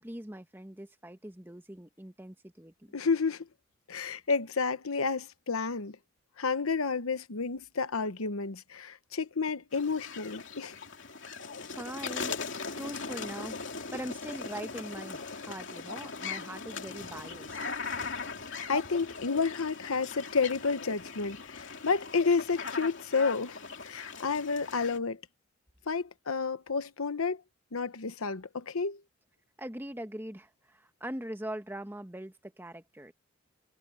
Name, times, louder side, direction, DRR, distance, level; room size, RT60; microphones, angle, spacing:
voice 1, 0.0-2.9 11.6-12.3 12.7-13.6 13.9-17.6 29.6-33.1, right 1 dB, 10° right, 1.1 m, -42 dB
voice 2, 2.9-3.5 3.9-6.0 6.4-10.8 18.7-25.2 25.9-27.4 27.7-29.0, left 4 dB, 85° left, 1.0 m, -30 dB
sound 1, 9.7-25.0, left 5 dB, 60° left, 2.9 m, -39 dB
head